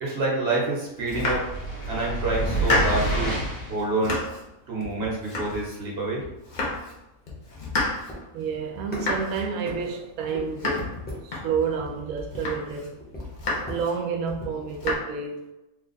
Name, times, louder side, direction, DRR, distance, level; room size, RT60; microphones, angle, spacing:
voice 1, 0.0-1.4 1.9-3.4 3.7-4.2 4.7-6.3, right 2 dB, 50° right, 1.1 m, -27 dB
Domestic sounds home sounds, 1.0-1.9 2.3-3.2 3.6-4.5 4.8-5.9 6.2-7.0 7.2-11.8 12.2-12.9 13.2-13.9 14.3-14.9, left 2 dB, 45° left, 0.7 m, -31 dB
sound 1, 1.2-3.8, right 2 dB, 80° left, 1.3 m, -28 dB
sound 2, 6.0-14.7, left 1 dB, 10° left, 0.8 m, -42 dB
voice 2, 8.3-10.9 11.2-13.0 13.7-15.5, right 6 dB, 85° right, 1.1 m, -29 dB
3.2 x 2.3 x 3.9 m
omnidirectional pair, 1.4 m